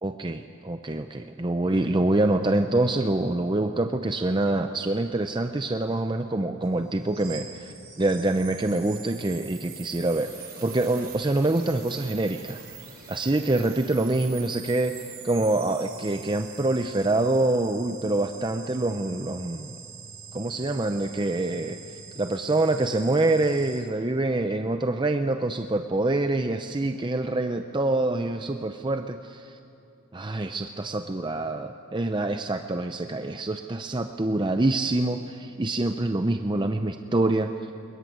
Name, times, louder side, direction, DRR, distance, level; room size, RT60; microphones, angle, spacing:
voice 1, 0.0-12.6 13.1-19.7 20.3-21.8 22.2-29.6 30.1-37.5, right 2 dB, 20° right, 7 dB, 0.6 m, -26 dB
sound 1, 6.6-23.8, right 6 dB, 45° right, 7.9 m, -44 dB
22.0 x 21.0 x 9.4 m, 2.7 s
head